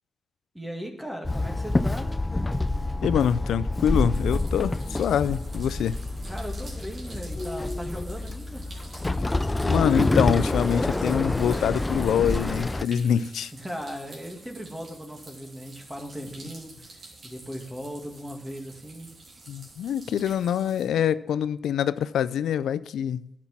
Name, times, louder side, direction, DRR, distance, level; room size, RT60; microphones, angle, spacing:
voice 1, 0.5-2.2 6.3-8.8 13.5-19.1, equal, 10° right, 2.1 m, -38 dB
Walk footsteps / Chatter / Hiss, 1.2-12.8, left 2 dB, 25° left, 0.4 m, -27 dB
voice 2, 3.0-6.0 9.6-13.5 19.5-23.3, left 9 dB, 85° left, 0.4 m, -25 dB
sound 1, 4.1-20.9, right 2 dB, 60° right, 3.0 m, -48 dB
10.0 x 6.1 x 7.3 m
supercardioid pair, 50°, 0 cm